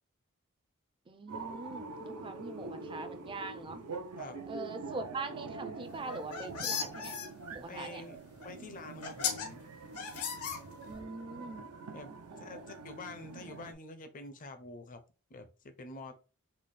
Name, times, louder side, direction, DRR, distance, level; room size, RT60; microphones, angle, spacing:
voice 1, 1.1-3.8 4.5-7.2 7.5-8.1 10.8-11.7 12.3-12.7, right 3 dB, 20° right, 0.4 m, -43 dB
sound 1, 1.3-13.7, right 3 dB, 90° right, 0.6 m, -45 dB
sound 2, 6.0-7.3 8.4-8.5 9.0-9.5 10.0-11.0, left 6 dB, 80° left, 0.9 m, -36 dB
voice 2, 7.7-8.2 8.4-9.6 11.9-15.0 15.3-16.1, left 2 dB, 35° left, 0.5 m, -47 dB
4.0 x 2.1 x 3.2 m
head